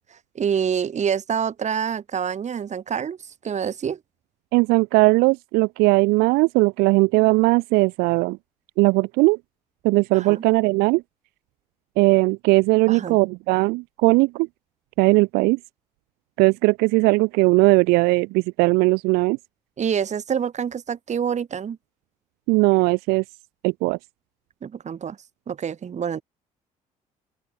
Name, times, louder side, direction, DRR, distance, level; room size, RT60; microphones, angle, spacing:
voice 1, 0.0-3.2 3.4-4.0 10.1-10.4 12.9-13.2 19.8-21.8 24.6-25.2 25.5-26.2, right 7 dB, 45° right, 2.1 m, -27 dB
voice 2, 4.5-8.4 8.8-9.4 9.8-11.0 12.0-14.5 15.0-15.6 16.4-19.4 22.5-23.2 23.6-24.0, right 25 dB, 80° right, 0.7 m, -19 dB
open air
supercardioid pair, 65°, 16 cm